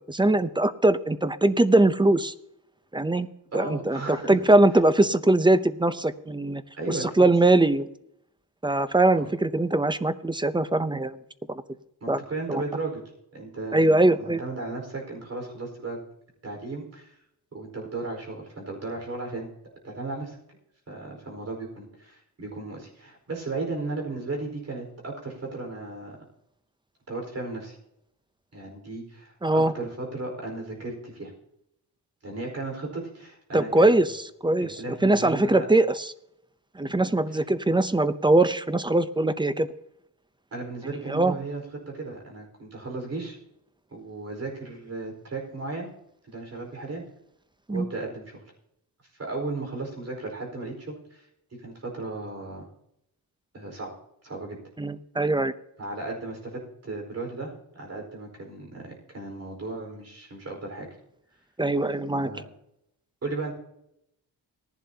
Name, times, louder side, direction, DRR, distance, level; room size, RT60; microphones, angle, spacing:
voice 1, 0.0-2.3 2.9-3.3 3.5-6.6 6.9-7.9 8.6-11.2 11.5-11.6 12.1-12.2 12.5-12.6 13.7-14.4 29.4-29.7 33.5-34.1 34.4-34.8 35.0-36.1 36.8-39.7 41.1-41.3 47.7-47.9 54.8-55.5 61.6-62.3, right 2 dB, 10° right, 12 dB, 0.6 m, -21 dB
voice 2, 3.5-4.4 6.8-7.3 9.1-9.3 12.0-13.0 13.3-16.0 16.4-17.2 17.5-19.5 19.8-20.6 20.9-26.2 27.1-27.8 28.5-31.3 32.2-34.1 34.6-35.7 37.3-37.4 40.5-41.6 41.9-43.4 43.9-45.9 46.3-47.1 47.7-48.4 49.2-51.3 51.6-52.7 53.5-53.9 54.2-54.6 55.8-60.9 62.2-62.5 63.2-63.5, right 3 dB, 40° right, 1 dB, 4.6 m, -35 dB
19.0 x 11.5 x 2.8 m, 0.78 s
cardioid pair, 115°, 40 cm